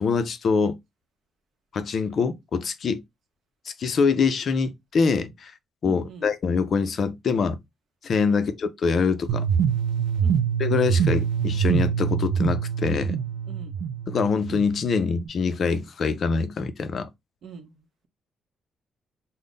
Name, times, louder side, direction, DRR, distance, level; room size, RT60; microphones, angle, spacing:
voice 1, 0.0-0.8 1.7-3.0 3.7-5.5 5.8-7.6 8.0-9.4 10.6-13.2 14.1-17.1, left 5 dB, 40° left, 0.4 m, -24 dB
voice 2, 5.8-6.3 8.3-8.4 10.2-10.4 13.4-13.7 17.4-18.1, right 4 dB, 55° right, 0.7 m, -42 dB
sound 1, 9.3-15.3, right 7 dB, 80° right, 0.3 m, -25 dB
3.7 x 2.0 x 3.7 m
cardioid pair, 165°, 0 cm